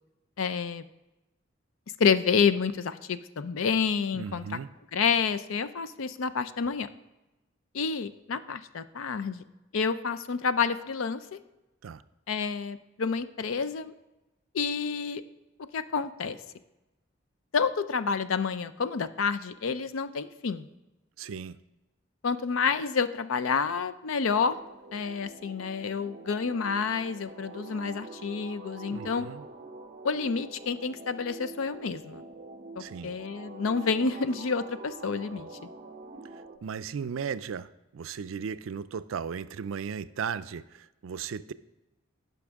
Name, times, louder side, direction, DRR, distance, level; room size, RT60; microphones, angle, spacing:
voice 1, 0.4-0.8 2.0-4.6 4.9-6.9 7.7-9.4 9.7-11.4 12.3-13.9 14.5-15.2 15.7-16.4 17.5-20.7 22.2-24.6 24.9-29.3 30.0-32.2 32.8-35.5, left 5 dB, 85° left, 13 dB, 0.5 m, -29 dB
voice 2, 4.1-4.7 11.8-12.0 21.2-21.6 28.9-29.4 32.8-33.1 36.6-37.7 37.9-41.5, right 6 dB, 80° right, 14 dB, 0.4 m, -36 dB
sound 1, 24.4-36.6, right 3 dB, 35° right, 0.7 m, -45 dB
15.0 x 6.0 x 3.5 m, 1.0 s
head